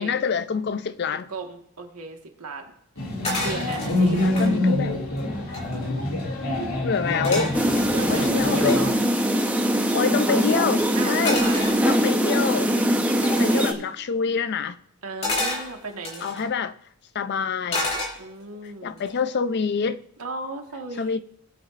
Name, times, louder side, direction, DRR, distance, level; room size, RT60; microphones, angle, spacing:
voice 1, 0.0-1.3 4.2-5.0 6.8-7.5 8.1-8.8 9.9-11.4 11.8-12.7 13.4-14.8 16.2-16.7 17.1-17.9 18.6-20.0 21.0-21.2, left 6 dB, 50° left, 0.4 m, -26 dB
voice 2, 1.3-2.7 3.4-4.2 7.9-8.9 10.9-11.2 11.4-11.7 13.3-13.9 15.0-16.5 18.2-19.0 20.2-21.2, right 3 dB, 85° right, 1.6 m, -36 dB
sound 1, 3.0-8.9, left 1 dB, 90° left, 2.4 m, -26 dB
sound 2, 3.2-4.5 5.1-5.2 5.4-6.0 7.2-8.8 11.3-12.3 13.2-13.5 15.2-16.4 17.7-18.5 19.0-19.3, left 2 dB, 30° left, 2.5 m, -30 dB
sound 3, 7.5-13.7, equal, 5° right, 0.8 m, -22 dB
19.0 x 8.3 x 2.5 m
head